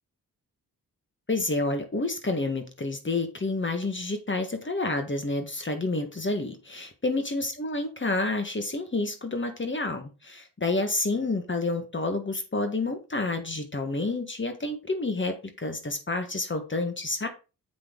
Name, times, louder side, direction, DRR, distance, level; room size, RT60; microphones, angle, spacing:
voice 1, 1.3-17.3, left 2 dB, 30° left, 1.6 m, -29 dB
7.8 x 5.6 x 3.9 m
cardioid pair, 55°, 37 cm